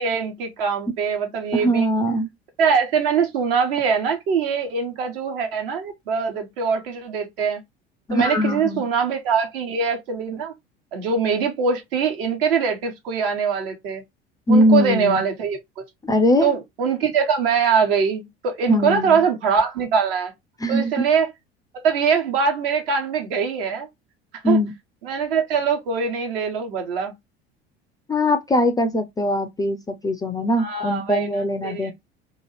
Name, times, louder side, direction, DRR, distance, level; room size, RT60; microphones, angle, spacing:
voice 1, 0.0-1.9 2.6-7.6 8.1-10.5 10.9-14.0 14.5-15.8 16.4-20.3 20.7-21.3 21.7-23.9 24.4-24.6 25.0-27.1 30.6-31.3 31.6-31.9, right 6 dB, 60° right, 1.1 m, -22 dB
voice 2, 1.5-2.3 8.1-8.8 14.5-15.3 16.0-16.5 18.7-19.2 20.6-20.9 24.4-24.7 28.1-31.9, left 1 dB, 10° left, 0.4 m, -21 dB
2.8 x 2.4 x 3.2 m
figure-of-eight pair, 65°, 32 cm